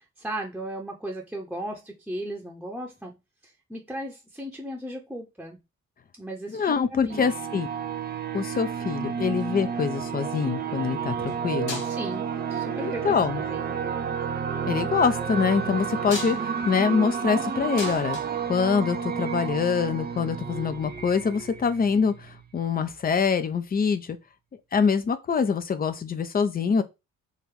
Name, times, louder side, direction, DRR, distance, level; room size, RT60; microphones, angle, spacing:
voice 1, 0.2-3.2 3.7-5.6 6.2-7.3 11.8-13.8, right 1 dB, 5° right, 1.0 m, -36 dB
voice 2, 6.5-7.7 8.3-11.8 12.8-13.4 14.7-18.2 18.5-24.2 24.7-26.8, left 6 dB, 20° left, 0.6 m, -25 dB
sound 1, 7.1-22.4, right 7 dB, 25° right, 0.6 m, -31 dB
sound 2, 9.4-10.1 11.2-11.4 11.7-12.3 13.2-13.7 15.8-19.2 20.5-20.6, left 3 dB, 85° left, 0.7 m, -39 dB
4.0 x 2.5 x 4.6 m
figure-of-eight pair, 40°, 40 cm